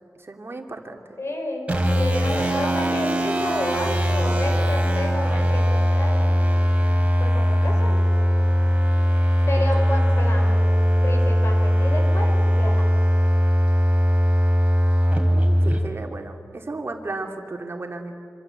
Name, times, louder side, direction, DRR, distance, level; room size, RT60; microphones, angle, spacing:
voice 1, 0.2-1.0 9.6-9.7 10.1-10.3 15.3-18.1, right 2 dB, 45° right, 3 dB, 2.8 m, -34 dB
voice 2, 1.2-6.4 7.2-8.0 9.5-10.5 11.0-12.8, left 1 dB, 55° left, 2 dB, 5.0 m, -30 dB
sound 1, 1.7-15.8, equal, 25° right, 4.1 m, -20 dB
26.5 x 26.0 x 8.1 m, 2.5 s
wide cardioid pair, 95°, 5 cm